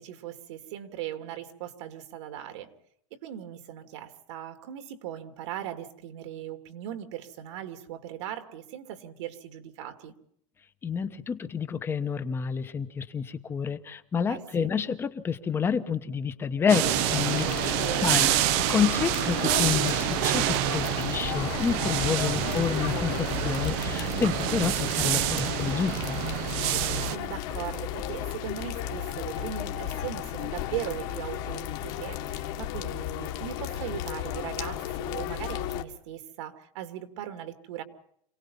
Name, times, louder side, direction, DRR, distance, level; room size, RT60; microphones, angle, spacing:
voice 1, 0.0-2.7 3.1-10.1 14.3-14.7 17.7-18.2 22.2-22.6 27.0-37.8, right 11 dB, 65° right, 7 dB, 2.5 m, -39 dB
voice 2, 10.8-18.3 18.7-26.2, left 6 dB, 15° left, 10 dB, 1.1 m, -29 dB
sound 1, 16.7-27.2, right 15 dB, 45° right, 0.7 m, -27 dB
sound 2, 16.8-35.8, left 11 dB, 45° left, 1.8 m, -34 dB
27.5 x 18.0 x 5.6 m, 0.68 s
supercardioid pair, 160°, 16 cm